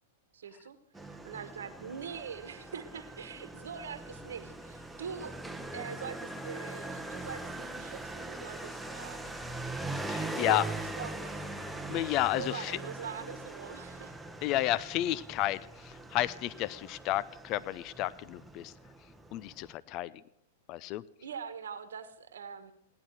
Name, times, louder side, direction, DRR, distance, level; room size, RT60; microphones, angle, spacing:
voice 1, 0.3-0.8 1.2-5.4 5.7-9.4 10.4-11.5 12.3-14.1 21.2-22.7, right 7 dB, 80° right, 12 dB, 1.2 m, -43 dB
Motorcycle, 0.9-19.7, right 2 dB, 5° right, 1.0 m, -41 dB
voice 2, 10.1-10.6 11.9-12.8 14.4-18.7 19.3-20.2 20.7-21.0, left 15 dB, 45° left, 19 dB, 0.5 m, -31 dB
16.5 x 11.0 x 6.3 m, 0.76 s
hypercardioid pair, 110°, 0 cm